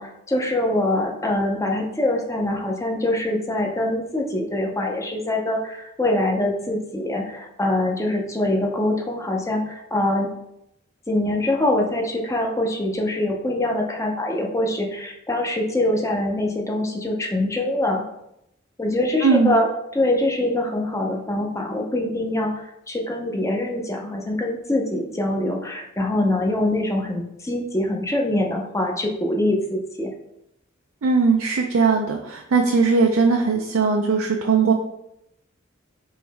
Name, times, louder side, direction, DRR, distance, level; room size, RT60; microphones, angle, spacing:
voice 1, 0.0-10.3 11.1-18.0 18.8-19.7 19.9-22.5 22.9-30.1, left 1 dB, 15° left, 1 dB, 0.6 m, -24 dB
voice 2, 19.2-19.5 31.0-34.7, right 4 dB, 70° right, 1 dB, 0.4 m, -19 dB
4.6 x 3.1 x 3.4 m, 0.82 s
head